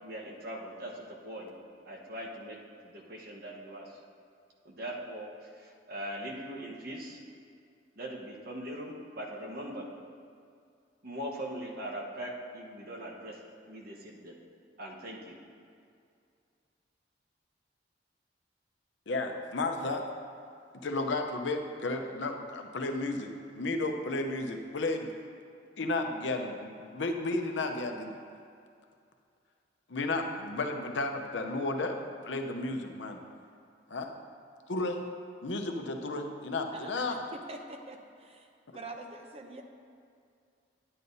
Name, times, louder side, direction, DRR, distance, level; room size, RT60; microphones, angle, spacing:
voice 1, 0.0-1.5 1.8-2.6 2.8-3.9 4.6-5.3 5.6-7.2 8.0-9.9 11.0-13.4 13.7-14.3 14.8-15.4, right 1 dB, 55° right, -1 dB, 1.1 m, -41 dB
voice 2, 19.1-20.0 20.8-25.1 25.8-28.2 29.9-32.0 32.2-33.2 33.9-34.1 34.7-35.0 35.4-37.2 38.7-38.8, left 2 dB, 80° left, 4 dB, 0.7 m, -33 dB
voice 3, 37.3-38.5 38.7-39.6, right 2 dB, 35° right, 3 dB, 0.6 m, -45 dB
9.9 x 9.4 x 2.7 m, 2.3 s
head